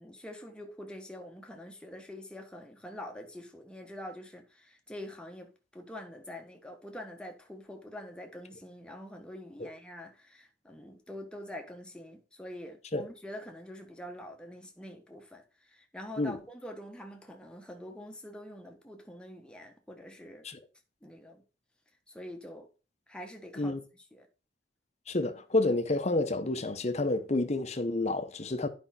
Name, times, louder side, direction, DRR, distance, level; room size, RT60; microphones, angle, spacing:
voice 1, 0.0-20.5 21.0-21.4 22.1-22.7 23.1-23.7 24.1-24.3, left 1 dB, 5° left, 1.2 m, -45 dB
voice 2, 25.1-28.7, left 2 dB, 35° left, 0.9 m, -29 dB
9.8 x 5.3 x 4.2 m
head